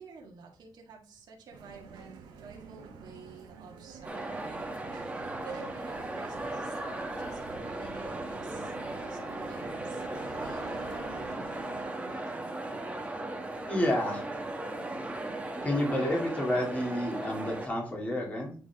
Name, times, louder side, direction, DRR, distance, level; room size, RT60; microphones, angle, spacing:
voice 1, 0.0-4.8 5.1-12.6, right 5 dB, 65° right, -2 dB, 1.9 m, -50 dB
sound 1, 1.5-11.9, right 5 dB, 85° right, 1.6 m, -48 dB
sound 2, 4.0-17.7, right 2 dB, 15° right, 1.6 m, -37 dB
voice 2, 13.6-14.2 15.6-18.5, left 1 dB, 20° left, -2 dB, 2.9 m, -30 dB
9.5 x 4.0 x 3.7 m, 0.41 s
cardioid pair, 85°, 8 cm